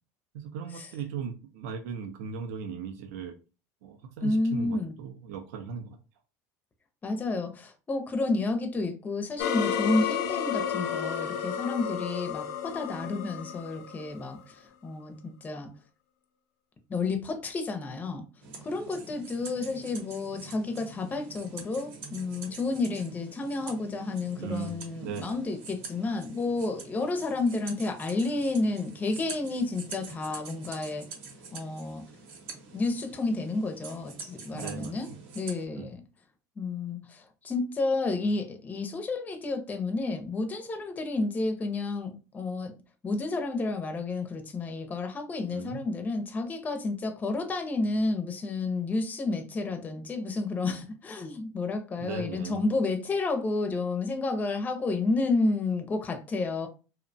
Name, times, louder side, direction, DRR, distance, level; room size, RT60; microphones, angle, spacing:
voice 1, 0.3-3.3 3.8-6.0 24.4-25.4 34.5-35.2 35.8-35.9 45.5-45.8 52.0-52.7, right 6 dB, 90° right, 0.4 m, -38 dB
voice 2, 4.2-4.9 7.0-15.7 16.9-18.2 18.6-31.1 31.5-32.0 32.7-35.1 35.3-36.0 36.6-42.7 43.0-56.7, left 3 dB, 20° left, 0.4 m, -31 dB
sound 1, 9.4-14.4, left 8 dB, 85° left, 0.4 m, -32 dB
sound 2, 18.4-35.7, right 4 dB, 70° right, 0.8 m, -46 dB
2.7 x 2.1 x 2.6 m
supercardioid pair, 125°, 9 cm